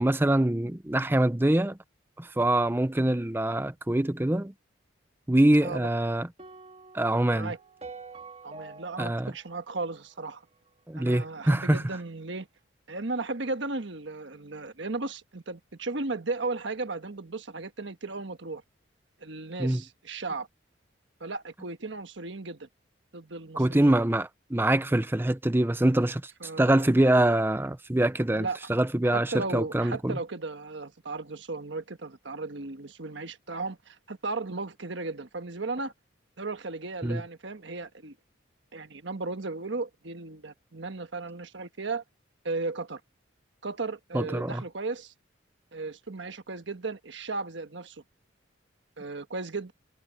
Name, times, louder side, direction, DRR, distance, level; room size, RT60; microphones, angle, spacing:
voice 1, 0.0-1.8 2.2-4.5 5.3-6.3 6.9-7.5 9.0-9.3 10.9-11.9 19.6-19.8 23.6-30.1 37.0-37.2 44.1-44.6, right 1 dB, 10° right, 0.5 m, -24 dB
sound 1, 6.4-10.7, right 3 dB, 30° right, 2.4 m, -47 dB
voice 2, 8.4-10.4 11.0-12.5 12.9-18.6 19.2-20.5 21.2-22.7 23.1-23.9 26.4-26.9 28.4-28.6 29.1-35.9 36.4-38.1 38.7-42.0 42.4-43.0 43.6-45.1 45.7-48.0 49.0-49.7, right 3 dB, 65° right, 1.3 m, -35 dB
head